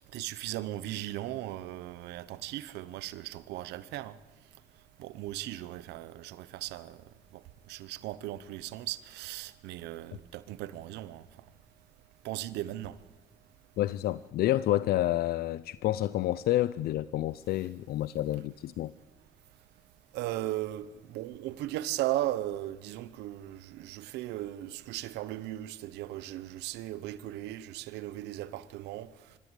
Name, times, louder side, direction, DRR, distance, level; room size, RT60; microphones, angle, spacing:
voice 1, 0.1-4.2 5.0-7.0 7.7-11.2 12.2-13.0 20.1-29.1, right 15 dB, 85° right, 1.0 m, -37 dB
voice 2, 13.8-18.9, left 14 dB, 65° left, 0.6 m, -29 dB
25.5 x 14.0 x 8.2 m
cardioid pair, 110°, 17 cm